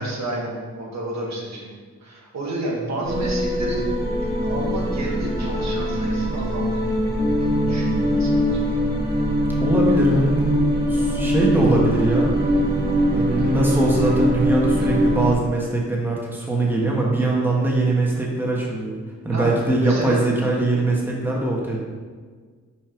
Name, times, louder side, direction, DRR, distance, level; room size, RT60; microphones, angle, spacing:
voice 1, 0.0-3.9 4.2-7.1 7.4-8.6 18.1-18.2 19.3-19.5 19.8-20.2, right 1 dB, 65° right, -3 dB, 1.7 m, -30 dB
sound 1, 3.0-15.3, equal, 35° right, 1.5 m, -22 dB
voice 2, 9.6-12.3 13.1-19.0 19.2-21.8, right 2 dB, 5° right, -3 dB, 1.3 m, -21 dB
5.9 x 4.4 x 5.2 m, 1.5 s
wide cardioid pair, 105°, 29 cm